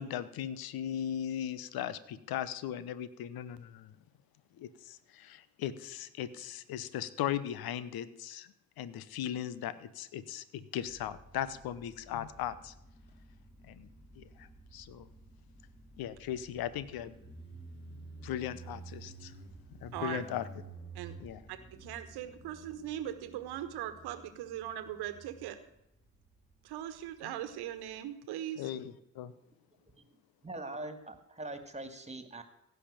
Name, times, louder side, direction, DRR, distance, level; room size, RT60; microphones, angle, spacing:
voice 1, 0.0-3.9 4.6-12.7 13.6-13.9 14.2-15.1 16.0-17.1 18.2-19.4 19.8-20.5 21.2-21.4 27.2-27.3 28.6-29.3, left 10 dB, 60° left, 16 dB, 1.0 m, -38 dB
Motorcycle, 10.8-28.0, right 2 dB, 25° left, 6.0 m, -52 dB
voice 2, 19.9-20.2 20.9-21.2 21.5-25.6 26.6-28.6, right 11 dB, 70° right, 11 dB, 1.4 m, -40 dB
voice 3, 29.7-30.1 30.4-32.4, right 2 dB, 15° right, 9 dB, 2.3 m, -43 dB
16.0 x 5.8 x 9.0 m, 0.85 s
hypercardioid pair, 40°, 40 cm